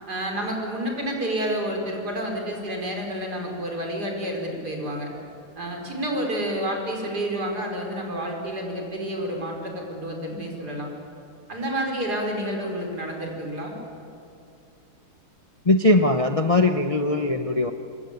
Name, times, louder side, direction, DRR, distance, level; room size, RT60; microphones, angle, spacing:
voice 1, 0.1-5.1 5.6-10.9 11.5-13.8, right 1 dB, 50° right, 1 dB, 5.1 m, -29 dB
voice 2, 15.6-17.7, left 2 dB, 70° left, 6 dB, 0.3 m, -20 dB
25.5 x 21.0 x 9.6 m, 2.6 s
omnidirectional pair, 2.3 m